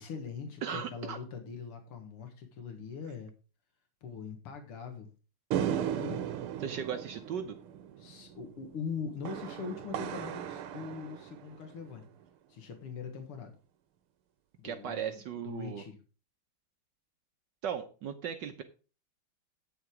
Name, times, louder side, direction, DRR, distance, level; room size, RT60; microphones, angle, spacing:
voice 1, 0.0-3.3 4.0-5.1 5.6-6.2 8.0-12.0 12.5-13.5 14.6-16.0, left 6 dB, 85° left, 5 dB, 2.3 m, -42 dB
voice 2, 0.6-1.2 6.6-7.6 14.6-15.8 17.6-18.6, right 8 dB, 65° right, 8 dB, 1.3 m, -37 dB
sound 1, 5.5-12.0, right 10 dB, 85° right, 1.7 m, -37 dB
8.9 x 6.7 x 4.7 m, 0.35 s
omnidirectional pair, 2.4 m